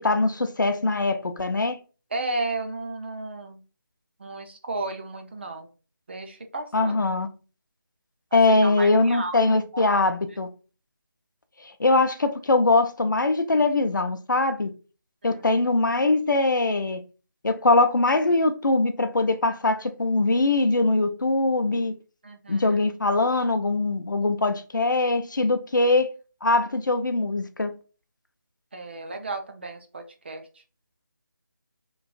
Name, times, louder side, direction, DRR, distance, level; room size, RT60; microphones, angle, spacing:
voice 1, 0.0-1.8 6.7-7.3 8.3-10.5 11.8-14.7 15.2-17.0 17.4-21.9 22.5-26.1 26.4-27.7, left 2 dB, 70° left, 0.5 m, -22 dB
voice 2, 2.1-3.6 4.2-5.7 6.1-6.9 8.3-9.4 9.7-10.0 15.2-15.4 22.2-22.8 28.7-30.4, right 2 dB, 35° right, 0.4 m, -34 dB
3.0 x 2.3 x 2.5 m
figure-of-eight pair, 160°, 11 cm